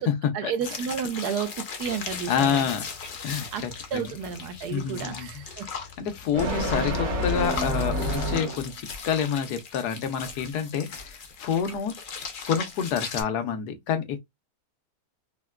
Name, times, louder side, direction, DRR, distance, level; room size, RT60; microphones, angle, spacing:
voice 1, 0.3-2.7 3.5-3.6 3.9-5.7, right 7 dB, 85° right, 1.2 m, -31 dB
sound 1, 0.6-13.2, left 6 dB, 70° left, 0.4 m, -38 dB
sound 2, 1.8-8.8, equal, 60° right, 1.5 m, -31 dB
voice 2, 2.3-2.9 3.2-4.1 4.7-5.4 5.7-12.0 12.5-14.2, left 7 dB, 90° left, 1.2 m, -28 dB
3.8 x 2.1 x 2.2 m
omnidirectional pair, 1.6 m